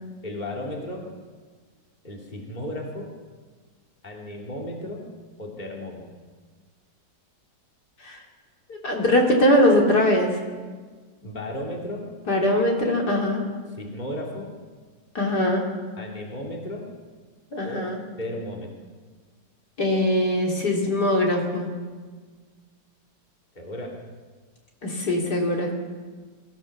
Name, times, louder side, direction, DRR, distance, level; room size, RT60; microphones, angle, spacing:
voice 1, 0.2-1.1 2.0-3.1 4.0-5.1 5.4-6.1 11.2-12.1 13.7-14.5 16.0-16.9 17.6-17.8 18.2-18.7 23.5-24.0, left 1 dB, 25° left, -1 dB, 3.0 m, -34 dB
voice 2, 8.7-10.4 12.3-13.4 15.2-15.6 17.5-18.0 19.8-21.7 24.8-25.7, left 1 dB, 60° left, -1 dB, 3.6 m, -21 dB
23.0 x 15.5 x 7.4 m, 1.5 s
omnidirectional pair, 2.0 m